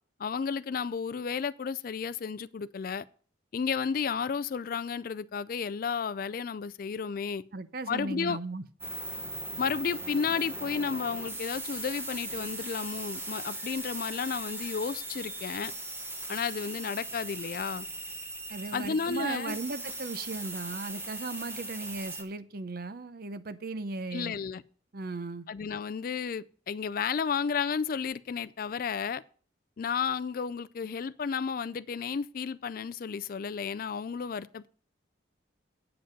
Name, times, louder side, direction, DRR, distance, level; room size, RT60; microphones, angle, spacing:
voice 1, 0.2-3.0 3.5-7.4 7.9-8.4 9.6-15.7 16.3-17.9 18.7-19.6 24.1-24.6 25.5-29.2 29.8-34.7, left 6 dB, 45° left, 0.3 m, -32 dB
voice 2, 7.5-8.6 18.5-24.3 24.9-25.5, right 3 dB, 50° right, 0.7 m, -37 dB
sound 1, 8.8-22.2, right 2 dB, 10° right, 1.2 m, -39 dB
8.9 x 7.8 x 5.1 m
head